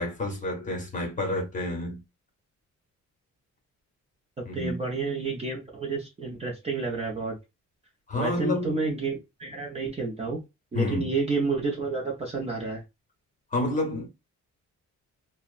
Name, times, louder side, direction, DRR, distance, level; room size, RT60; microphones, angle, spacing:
voice 1, 0.0-2.0 4.5-4.8 8.1-8.9 10.7-11.1 13.5-14.1, left 2 dB, 25° left, 0.8 m, -29 dB
voice 2, 4.4-7.3 8.2-10.4 10.7-12.8, right 4 dB, 20° right, 0.5 m, -30 dB
2.7 x 2.0 x 2.4 m
cardioid pair, 150°, 31 cm